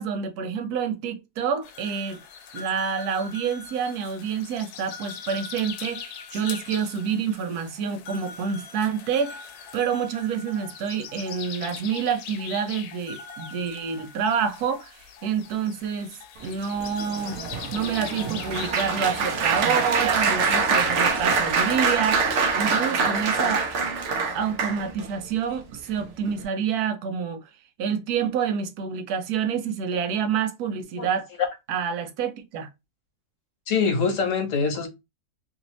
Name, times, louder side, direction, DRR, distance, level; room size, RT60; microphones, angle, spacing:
voice 1, 0.0-2.2 2.5-9.4 9.7-17.4 17.7-23.7 24.3-27.4 27.8-31.3 31.7-32.7, right 7 dB, 85° right, 1.2 m, -28 dB
sound 1, 1.6-20.3, left 7 dB, 85° left, 1.1 m, -41 dB
Applause, 16.8-25.1 25.7-26.0 26.3-26.4, right 4 dB, 60° right, 0.9 m, -24 dB
voice 2, 33.7-34.9, left 5 dB, 60° left, 1.3 m, -24 dB
3.1 x 2.6 x 3.0 m
omnidirectional pair, 1.6 m